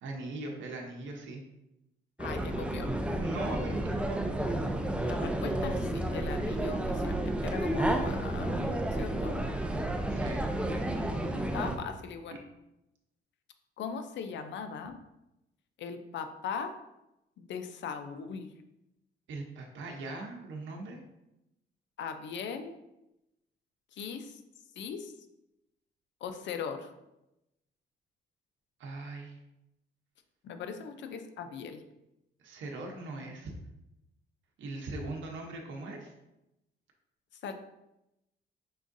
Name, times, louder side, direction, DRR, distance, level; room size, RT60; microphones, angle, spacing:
voice 1, 0.0-1.4 3.2-4.4 10.1-10.4 12.3-12.4 19.3-21.0 28.8-29.3 32.4-33.5 34.6-36.1, right 2 dB, 70° right, 1 dB, 0.8 m, -40 dB
voice 2, 2.2-2.9 5.0-8.7 9.0-9.4 11.3-12.4 13.8-15.0 15.8-16.7 17.4-18.5 22.0-22.8 23.9-24.4 24.8-25.1 26.2-26.9 30.4-31.8 37.4-37.5, left 6 dB, 65° left, 8 dB, 0.6 m, -39 dB
sound 1, 2.2-11.8, right 1 dB, 5° right, 0.5 m, -31 dB
5.5 x 3.5 x 2.6 m, 0.91 s
cardioid pair, 90°, 20 cm